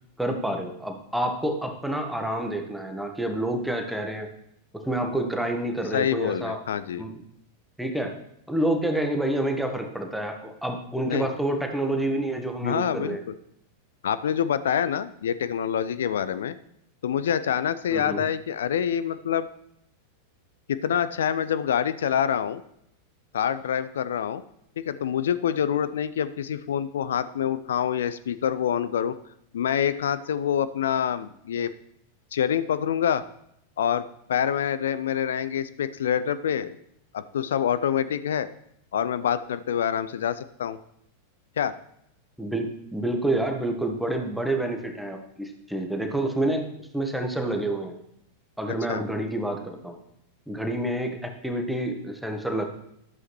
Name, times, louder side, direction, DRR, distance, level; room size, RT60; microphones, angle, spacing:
voice 1, 0.2-4.3 4.8-6.6 7.0-7.1 7.8-8.1 8.5-13.2 17.9-18.2 42.4-47.9 48.6-50.0 50.5-52.6, right 1 dB, ahead, 4 dB, 1.2 m, -28 dB
voice 2, 5.9-7.1 11.1-11.3 12.6-13.3 14.0-16.5 17.0-19.5 20.7-22.6 23.3-24.4 24.8-29.2 29.5-31.7 32.3-33.2 33.8-36.8 37.1-38.5 38.9-40.8 41.6-41.8 48.9-49.0, left 9 dB, 60° left, 14 dB, 0.3 m, -26 dB
13.0 x 7.7 x 3.1 m, 0.76 s
figure-of-eight pair, 90°, 0 cm